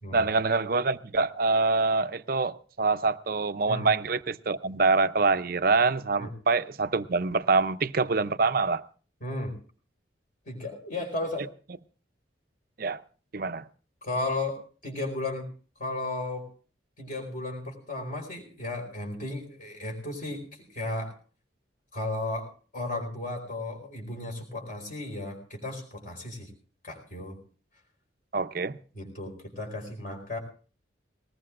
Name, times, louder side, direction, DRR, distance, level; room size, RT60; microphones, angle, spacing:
voice 1, 0.1-8.8 11.4-11.5 12.8-13.0 13.3-13.6 28.3-28.8, right 4 dB, 50° right, 12 dB, 0.6 m, -25 dB
voice 2, 9.2-9.6 10.4-11.5 14.0-15.5 15.8-16.5 17.0-21.1 21.9-22.5 22.7-26.5 26.8-27.4 28.9-30.4, left 2 dB, 45° left, 1 dB, 4.7 m, -34 dB
20.5 x 19.5 x 2.5 m, 0.40 s
head